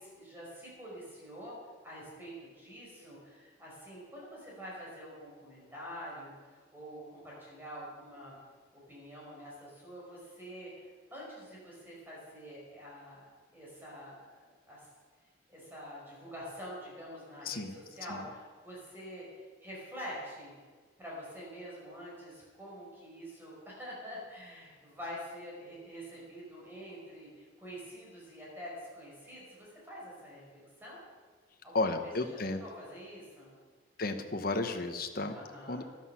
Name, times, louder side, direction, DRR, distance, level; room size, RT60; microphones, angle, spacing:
voice 1, 0.0-1.5 1.8-8.3 8.9-13.2 13.5-14.4 14.7-14.9 15.5-20.5 21.0-31.0 31.6-31.9 32.4-33.5 35.3-35.8, equal, 10° right, -5 dB, 5.1 m, -46 dB
voice 2, 31.7-32.6 34.0-35.4 35.7-35.8, left 2 dB, 50° left, 6 dB, 1.1 m, -33 dB
13.5 x 12.0 x 5.8 m, 1.5 s
head